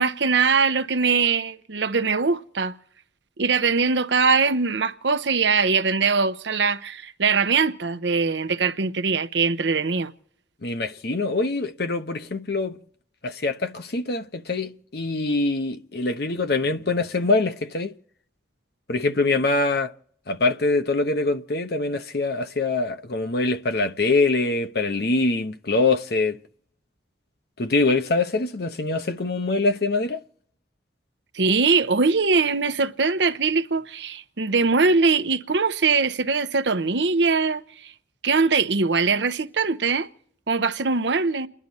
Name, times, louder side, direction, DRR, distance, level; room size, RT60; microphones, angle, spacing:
voice 1, 0.0-2.7 3.4-10.1 31.3-37.9 38.2-40.1 40.5-41.5, right 4 dB, 70° right, 0.8 m, -22 dB
voice 2, 10.6-12.8 13.2-17.9 18.9-19.9 20.3-26.4 27.6-30.2, left 3 dB, 60° left, 0.9 m, -24 dB
30.0 x 11.0 x 4.1 m
head